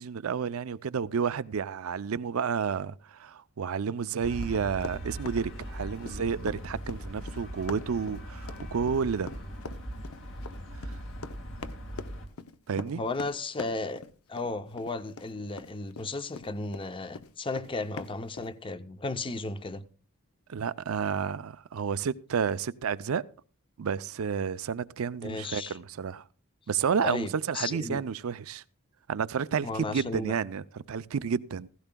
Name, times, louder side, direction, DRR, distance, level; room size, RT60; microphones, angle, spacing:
voice 1, 0.0-9.3 10.8-11.0 12.7-13.0 20.5-23.2 23.8-26.2 26.7-28.6 29.1-31.7, right 6 dB, 70° right, 0.5 m, -31 dB
sound 1, 4.2-12.3, right 1 dB, 65° left, 1.9 m, -40 dB
Run, 4.4-16.8 17.1-18.5, left 4 dB, 85° left, 0.7 m, -43 dB
voice 2, 12.9-14.0 14.3-19.8 25.2-25.8 27.0-28.0 29.6-30.3, left 3 dB, 25° left, 0.6 m, -34 dB
16.0 x 15.5 x 2.2 m
head